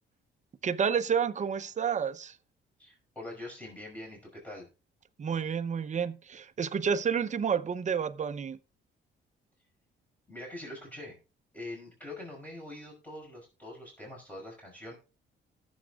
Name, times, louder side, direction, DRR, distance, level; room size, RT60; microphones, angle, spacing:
voice 1, 0.6-2.3 5.2-8.6, right 7 dB, 35° right, 0.7 m, -30 dB
voice 2, 2.8-4.7 10.3-11.2 11.5-15.0, left 1 dB, 10° left, 5.5 m, -44 dB
18.5 x 7.2 x 2.4 m
cardioid pair, 90°, 20 cm